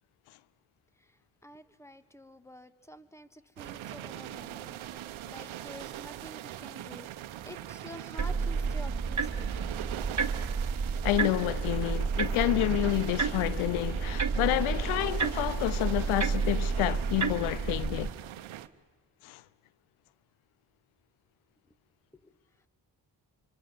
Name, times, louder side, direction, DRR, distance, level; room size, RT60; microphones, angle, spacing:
voice 1, 1.4-4.8 5.3-7.1 7.4-9.5 22.2-22.3, left 1 dB, 5° left, 1.7 m, -49 dB
sound 1, 3.6-18.7, right 12 dB, 75° right, 1.1 m, -42 dB
sound 2, 8.2-18.1, right 5 dB, 35° right, 1.7 m, -31 dB
voice 2, 11.0-18.1 19.2-19.4, left 16 dB, 90° left, 0.7 m, -29 dB
26.0 x 24.0 x 7.2 m
supercardioid pair, 45°, 47 cm